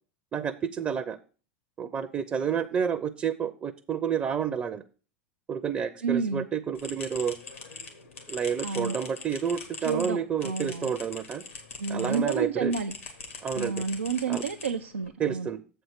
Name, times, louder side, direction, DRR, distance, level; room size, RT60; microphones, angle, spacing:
voice 1, 0.3-1.2 1.8-4.8 5.5-7.4 8.3-11.4 11.9-12.7 13.4-13.8 14.3-14.4 15.2-15.6, right 7 dB, 25° right, 8 dB, 0.6 m, -30 dB
voice 2, 6.0-6.5 8.6-9.0 9.8-10.9 11.8-12.9 13.5-15.5, right 5 dB, 90° right, 3 dB, 0.5 m, -30 dB
sound 1, 6.7-12.4 12.7-15.1, left 4 dB, 90° left, 2.1 m, -42 dB
7.8 x 4.5 x 6.5 m, 0.37 s
hypercardioid pair, 85°, 7 cm